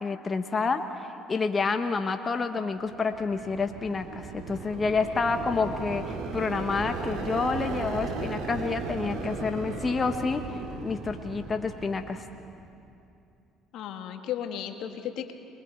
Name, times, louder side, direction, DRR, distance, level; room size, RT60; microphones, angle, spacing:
voice 1, 0.0-10.4 10.8-12.2, left 4 dB, 30° left, 6 dB, 1.1 m, -29 dB
sound 1, 2.9-12.7, right 4 dB, 75° right, 3.0 m, -36 dB
voice 2, 13.7-15.3, left 10 dB, 70° left, 6 dB, 1.5 m, -35 dB
29.0 x 22.5 x 4.5 m, 2.7 s
supercardioid pair, 75°, 0 cm